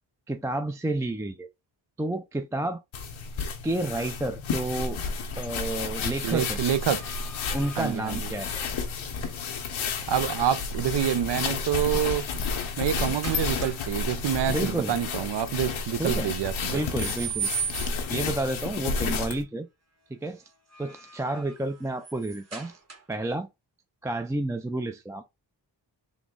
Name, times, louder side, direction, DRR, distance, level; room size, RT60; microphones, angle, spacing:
voice 1, 0.3-1.5 2.0-2.8 3.6-5.0 5.4-6.6 7.5-8.6 14.5-14.9 16.0-16.3 16.7-17.5 18.1-19.7 20.1-20.4 20.8-22.8 23.1-23.5 24.0-25.2, right 2 dB, 5° right, 0.4 m, -30 dB
sound 1, 2.9-19.4, left 5 dB, 90° left, 0.8 m, -31 dB
sound 2, 6.1-9.0 10.7-11.1 11.5-13.9 14.2-14.7 16.3-18.2 20.5-23.3, right 7 dB, 35° right, 1.3 m, -39 dB
voice 2, 6.2-7.0 7.8-8.3 10.1-12.3 12.8-16.8, right 10 dB, 65° right, 0.6 m, -27 dB
3.7 x 2.0 x 3.6 m
cardioid pair, 45°, 46 cm